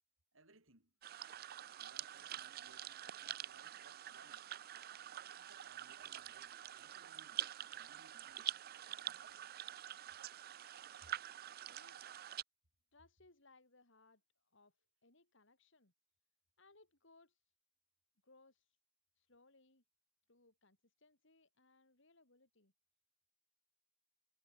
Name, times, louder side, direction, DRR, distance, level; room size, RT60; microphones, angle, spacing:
voice 1, 0.3-0.9 1.8-4.5 5.2-8.6, right 2 dB, 80° right, 7.6 m, -68 dB
sound 1, 1.0-12.4, right 11 dB, 50° right, 0.5 m, -47 dB
voice 2, 11.7-12.1 12.9-14.8 15.0-15.9 16.6-17.4 18.2-18.8 19.1-19.8 20.3-22.7, left 3 dB, 65° left, 4.7 m, -68 dB
head